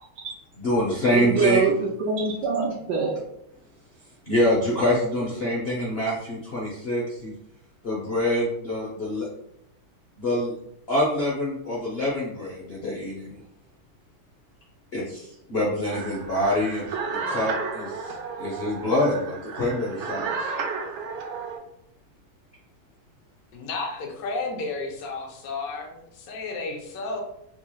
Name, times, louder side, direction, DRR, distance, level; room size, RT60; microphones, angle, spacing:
voice 1, 0.6-1.6 4.3-7.3 7.8-9.3 10.2-10.5 10.9-13.4 14.9-20.5, left 1 dB, 90° left, -5 dB, 0.5 m, -26 dB
voice 2, 1.1-3.2, right 4 dB, 70° right, -3 dB, 1.1 m, -24 dB
sound 1, 15.8-21.6, right 5 dB, 90° right, 1.4 m, -32 dB
voice 3, 23.5-27.2, left 3 dB, 60° left, 1 dB, 1.0 m, -32 dB
4.3 x 3.0 x 2.3 m, 0.77 s
omnidirectional pair, 2.2 m